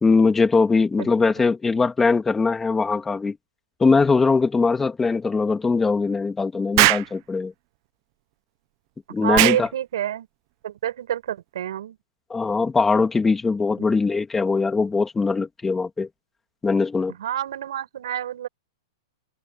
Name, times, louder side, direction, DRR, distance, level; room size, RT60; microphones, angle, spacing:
voice 1, 0.0-3.4 3.8-7.5 9.1-9.7 12.3-16.1 16.6-17.1, left 4 dB, 10° left, 2.4 m, -21 dB
Explosion, 6.8-7.1 9.3-9.6, right 23 dB, 40° right, 0.7 m, -18 dB
voice 2, 9.1-10.3 10.6-12.0 17.2-18.5, right 11 dB, 75° right, 7.8 m, -28 dB
hypercardioid pair, 150°, 3 cm